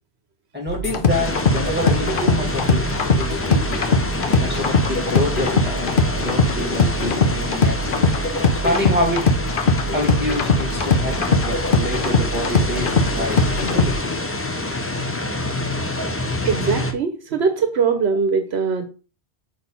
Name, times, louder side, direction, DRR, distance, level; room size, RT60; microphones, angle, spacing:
voice 1, 0.5-3.8 4.4-8.0 8.5-9.3 9.9-14.2, left 1 dB, 10° right, 0 dB, 2.3 m, -27 dB
sound 1, 0.7-13.9, left 3 dB, 55° left, 0.9 m, -20 dB
sound 2, 1.1-16.9, left 2 dB, 15° left, 0.6 m, -27 dB
voice 2, 16.4-18.8, right 5 dB, 75° right, 8 dB, 1.0 m, -21 dB
6.3 x 3.2 x 5.5 m, 0.34 s
omnidirectional pair, 1.1 m